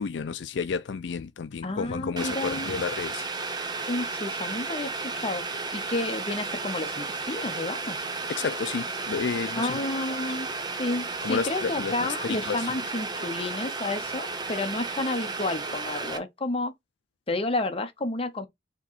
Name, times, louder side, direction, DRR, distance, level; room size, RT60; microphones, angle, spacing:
voice 1, 0.0-3.3 8.3-9.8 11.2-12.7, left 5 dB, 80° left, 0.4 m, -31 dB
voice 2, 1.6-2.7 3.9-5.4 5.7-8.0 9.6-10.5 10.8-16.7 17.3-18.5, left 2 dB, 35° left, 0.8 m, -31 dB
Boiling, 2.2-16.2, right 3 dB, 25° right, 0.7 m, -33 dB
4.3 x 3.1 x 3.9 m
head